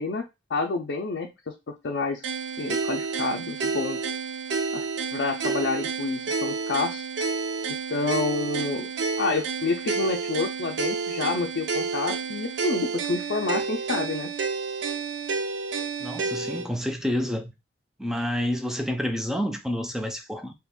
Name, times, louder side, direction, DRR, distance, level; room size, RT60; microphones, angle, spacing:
voice 1, 0.0-2.3 2.6-4.0 4.7-4.9 5.1-7.1 7.9-8.9 9.2-14.3, left 3 dB, 65° left, 0.4 m, -29 dB
sound 1, 2.2-16.7, right 4 dB, 70° right, 0.4 m, -30 dB
voice 2, 16.0-17.5 18.0-20.5, equal, 5° right, 0.4 m, -29 dB
2.9 x 2.4 x 3.5 m
head